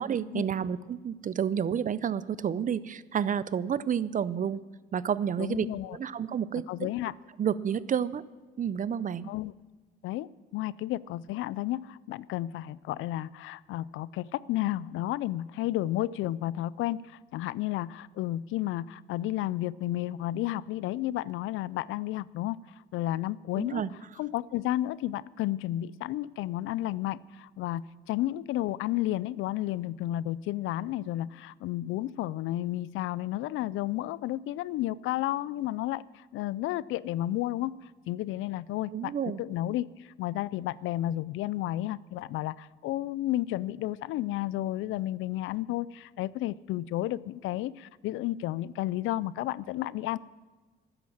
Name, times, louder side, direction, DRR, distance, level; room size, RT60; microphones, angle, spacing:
voice 1, 0.0-4.6 4.9-6.9 7.4-8.2 8.6-9.3 23.6-23.9 38.9-39.4, right 8 dB, 40° right, 18 dB, 0.6 m, -30 dB
voice 2, 5.4-6.0 6.7-7.1 9.3-9.5 10.0-22.6 22.9-23.8 24.2-37.8 38.1-39.1 39.4-50.2, left 14 dB, 85° left, 21 dB, 0.4 m, -32 dB
12.5 x 10.0 x 7.3 m, 1.4 s
cardioid pair, 90°, 20 cm